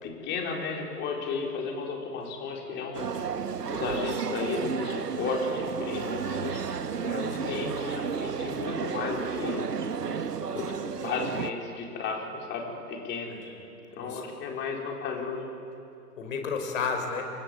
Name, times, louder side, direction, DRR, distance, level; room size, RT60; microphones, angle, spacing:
voice 1, 0.0-3.1 3.7-6.6 7.0-9.7 10.5-13.5 13.9-15.4, left 4 dB, 20° left, 0 dB, 4.4 m, -34 dB
sound 1, 2.9-11.5, right 6 dB, 75° right, 1.2 m, -32 dB
voice 2, 7.1-7.4 13.3-13.6 14.0-14.4 16.2-17.3, left 5 dB, 50° left, 5 dB, 5.2 m, -33 dB
29.0 x 24.0 x 8.0 m, 2.6 s
figure-of-eight pair, 120°, 48 cm